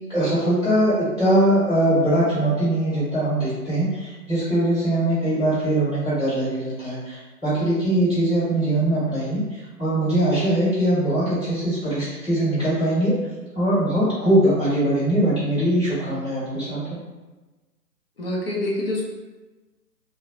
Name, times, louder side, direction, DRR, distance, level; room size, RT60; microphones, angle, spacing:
voice 1, 0.1-13.1 13.5-17.0, right 1 dB, 10° left, -16 dB, 1.1 m, -21 dB
voice 2, 18.2-19.0, left 1 dB, 40° left, -3 dB, 0.4 m, -26 dB
2.4 x 2.0 x 2.6 m, 1.2 s
hypercardioid pair, 150°, 49 cm